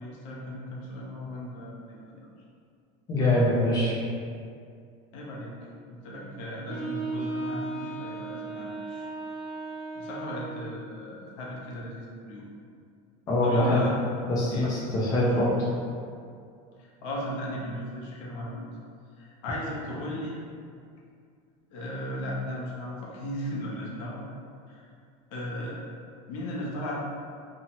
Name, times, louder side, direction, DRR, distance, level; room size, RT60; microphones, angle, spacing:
voice 1, 0.0-2.3 5.1-5.5 5.9-9.1 9.9-12.5 13.4-13.9 14.4-14.7 15.1-15.5 16.8-18.6 19.2-20.4 21.7-24.2 24.7-24.9 25.3-25.8 26.3-27.0, left 1 dB, 70° left, -4 dB, 0.6 m, -36 dB
voice 2, 3.1-4.0 13.3-13.8 14.3-15.6, left 1 dB, 20° left, -7 dB, 0.4 m, -23 dB
Wind instrument woodwind instrument, 6.7-10.8, right 3 dB, 35° right, 0.9 m, -36 dB
2.7 x 2.0 x 2.8 m, 2.3 s
cardioid pair, 165°, 17 cm